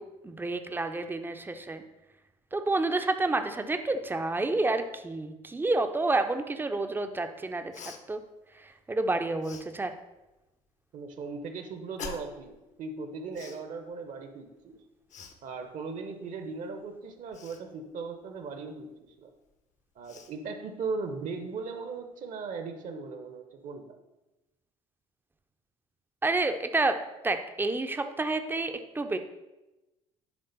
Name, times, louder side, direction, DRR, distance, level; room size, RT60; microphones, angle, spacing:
voice 1, 0.0-1.8 2.5-7.7 8.1-8.2 8.5-9.9 26.2-29.2, right 2 dB, 10° right, 7 dB, 0.6 m, -29 dB
Cough, 7.7-8.0 9.4-9.7 12.0-12.4 13.3-13.6 15.1-15.4 17.3-17.6 19.5-19.6 20.0-20.3, left 6 dB, 40° left, 0.8 m, -43 dB
voice 2, 10.9-14.8 15.4-19.3 20.0-24.0, right 4 dB, 40° right, 7 dB, 0.8 m, -38 dB
10.5 x 3.7 x 4.0 m, 1.0 s
figure-of-eight pair, 60°, 19 cm